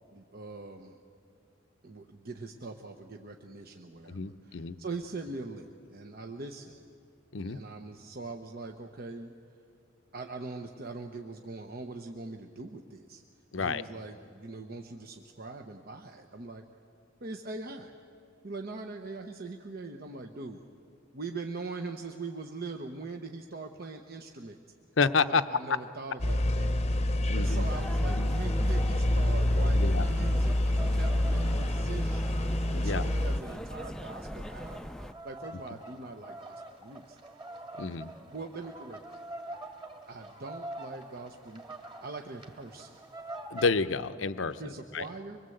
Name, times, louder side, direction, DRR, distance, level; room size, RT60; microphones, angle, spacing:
voice 1, 0.1-1.0 1.8-6.9 7.4-9.3 10.1-13.2 13.6-16.6 17.2-17.9 18.4-20.6 21.1-24.6 25.2-26.7 27.3-34.9 35.2-37.2 38.3-39.2 40.1-41.6 42.0-43.0 44.6-45.4, right 3 dB, 55° right, 4 dB, 1.0 m, -42 dB
voice 2, 4.1-4.8 7.3-7.6 13.5-13.8 25.0-25.4 27.3-27.7 28.1-28.3 29.7-30.1 32.7-33.1 37.8-38.1 43.5-45.1, left 4 dB, 80° left, 12 dB, 0.7 m, -30 dB
sound 1, 26.2-33.4, left 1 dB, 35° left, 0.8 m, -27 dB
sound 2, 27.5-35.1, equal, 5° left, 0.5 m, -42 dB
sound 3, 29.8-43.7, right 2 dB, 25° right, 2.0 m, -46 dB
25.0 x 21.5 x 7.9 m, 2.3 s
head